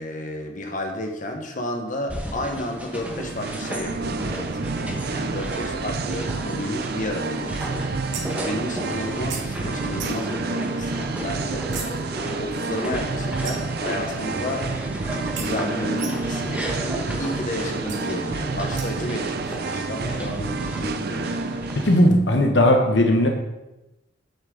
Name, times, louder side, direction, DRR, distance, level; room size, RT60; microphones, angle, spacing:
voice 1, 0.0-14.7 15.1-21.4, left 1 dB, 45° left, 3 dB, 1.4 m, -32 dB
sound 1, 2.1-22.0, equal, 10° right, 1.5 m, -35 dB
Singing, 2.9-22.1, right 3 dB, 60° right, 0.6 m, -29 dB
sound 2, 8.1-8.5 9.3-9.4 10.0-10.3 11.7-12.0 13.4-13.8 15.4-15.5 16.0-16.4 17.9-18.0 18.8-19.1, right 6 dB, 85° right, 2.3 m, -35 dB
voice 2, 21.7-23.3, left 1 dB, 70° left, 3 dB, 1.2 m, -17 dB
9.8 x 8.1 x 4.0 m, 0.99 s
head